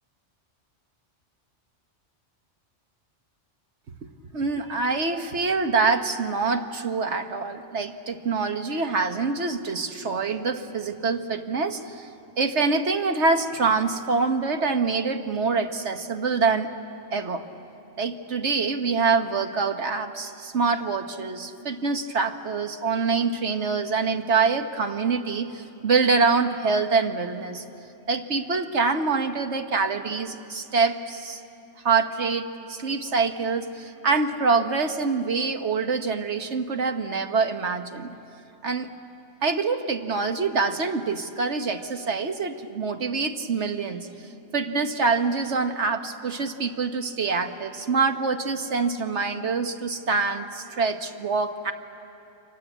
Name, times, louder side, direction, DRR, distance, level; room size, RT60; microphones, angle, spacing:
voice 1, 4.3-12.1 12.4-16.7 17.1-17.4 18.0-27.6 28.1-31.4 31.8-38.2 38.6-38.9 39.4-44.1 44.5-51.7, right 4 dB, 65° right, 6 dB, 1.5 m, -25 dB
29.5 x 24.5 x 8.2 m, 2.8 s
omnidirectional pair, 1.2 m